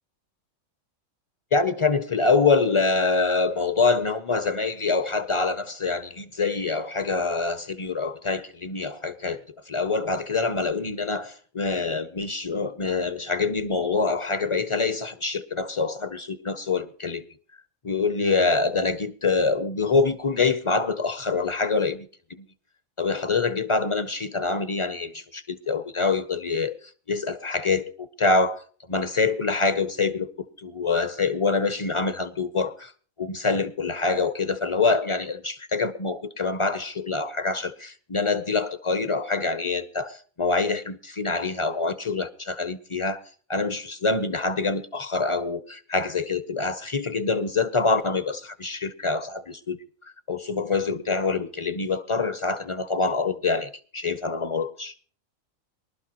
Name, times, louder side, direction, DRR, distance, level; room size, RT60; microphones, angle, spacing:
voice 1, 1.5-9.4 9.7-17.2 17.8-22.4 23.0-26.7 27.1-28.6 28.9-30.3 30.6-32.9 33.2-43.2 43.5-49.8 50.3-54.9, left 4 dB, 45° left, 0.4 m, -25 dB
24.0 x 12.0 x 2.9 m
omnidirectional pair, 1.4 m